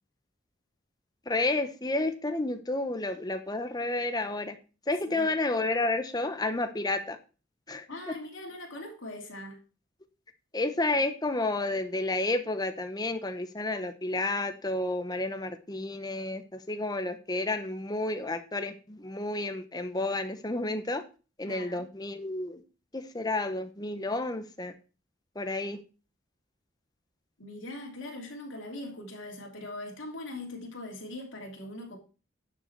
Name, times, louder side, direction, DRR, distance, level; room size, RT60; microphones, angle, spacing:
voice 1, 1.3-4.5 4.9-7.2 7.7-8.1 10.5-16.4 16.7-21.0 21.4-22.6 22.9-24.7 25.4-25.8, left 2 dB, 20° left, 0.8 m, -31 dB
voice 2, 7.9-9.6 21.4-21.9 27.4-32.0, left 1 dB, 70° left, 3.0 m, -41 dB
10.5 x 6.8 x 4.6 m
head